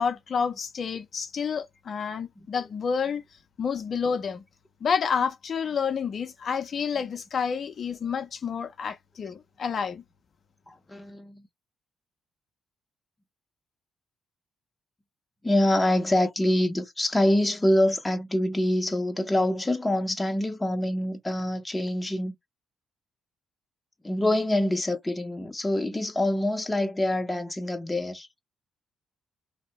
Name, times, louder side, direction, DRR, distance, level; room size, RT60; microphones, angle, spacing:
voice 1, 0.0-3.2 3.6-4.4 4.8-10.0, left 6 dB, 50° left, 0.5 m, -29 dB
voice 2, 10.7-11.4 15.4-22.3 24.0-28.3, left 1 dB, 10° left, 0.7 m, -25 dB
2.6 x 2.1 x 3.0 m
cardioid pair, 90°, 0 cm